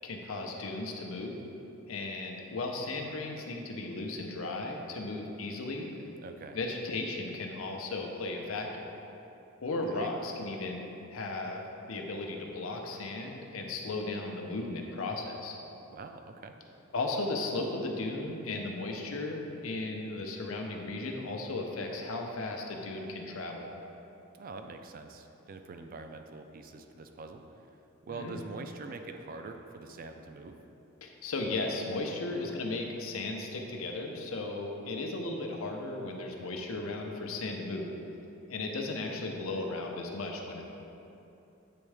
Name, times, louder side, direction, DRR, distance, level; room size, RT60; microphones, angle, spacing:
voice 1, 0.0-1.4 1.9-5.9 6.5-8.9 9.6-10.8 11.1-15.6 16.9-23.7 28.1-28.4 31.0-37.9 38.5-40.6, left 2 dB, 90° left, 2 dB, 0.7 m, -36 dB
voice 2, 6.2-6.6 9.9-10.1 15.9-16.5 24.3-27.4 28.0-30.6, right 3 dB, 45° right, 6 dB, 0.4 m, -44 dB
8.6 x 3.5 x 3.3 m, 2.9 s
head